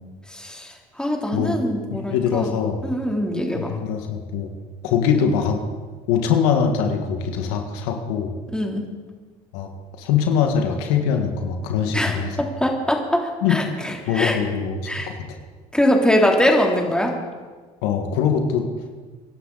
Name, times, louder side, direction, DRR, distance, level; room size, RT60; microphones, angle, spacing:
voice 1, 0.3-2.5 2.8-3.7 8.5-8.9 11.9-12.2 12.6-14.4 14.9-15.1 15.7-17.1, left 1 dB, 5° left, 0 dB, 3.3 m, -22 dB
voice 2, 1.9-2.8 3.5-4.5 4.8-5.6 6.1-8.3 9.5-9.7 10.0-12.4 13.4-13.6 14.1-15.2 17.8-18.6, left 7 dB, 75° left, 4 dB, 1.8 m, -22 dB
24.5 x 11.5 x 4.1 m, 1.4 s
hypercardioid pair, 75°, 19 cm